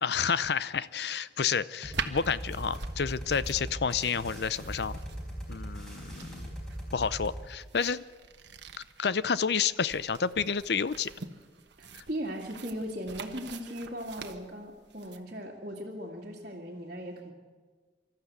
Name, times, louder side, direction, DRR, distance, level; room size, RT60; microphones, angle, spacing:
voice 1, 0.0-5.0 5.5-6.5 6.9-8.0 9.0-11.1 11.9-12.0, left 6 dB, 65° left, 17 dB, 0.6 m, -30 dB
sound 1, 1.8-7.4, equal, 5° left, 4.5 m, -40 dB
sound 2, 1.9-15.2, right 5 dB, 75° right, 1.2 m, -44 dB
voice 2, 11.8-17.3, equal, 45° right, -6 dB, 2.1 m, -38 dB
24.5 x 13.5 x 8.1 m, 1.5 s
head